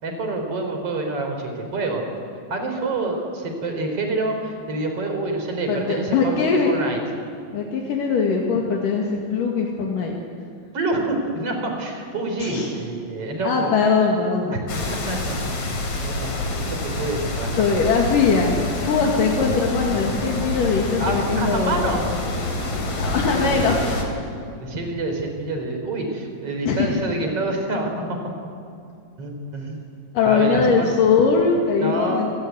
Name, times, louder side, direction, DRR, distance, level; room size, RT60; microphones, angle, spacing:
voice 1, 0.0-2.1 2.5-7.0 10.7-13.7 14.5-15.4 16.0-17.6 21.0-22.2 23.1-24.1 24.6-28.2 29.2-29.8 30.2-30.9 31.8-32.2, right 2 dB, 45° right, 4 dB, 4.9 m, -27 dB
voice 2, 5.7-6.7 7.5-10.2 12.4-12.7 13.4-14.7 17.6-18.5 18.9-22.3 23.0-24.0 26.7-27.0 30.1-32.3, left 5 dB, 75° left, -1 dB, 3.6 m, -21 dB
sound 1, 14.7-24.0, left 2 dB, 55° left, 4.8 m, -27 dB
28.5 x 18.0 x 9.5 m, 2.4 s
omnidirectional pair, 3.9 m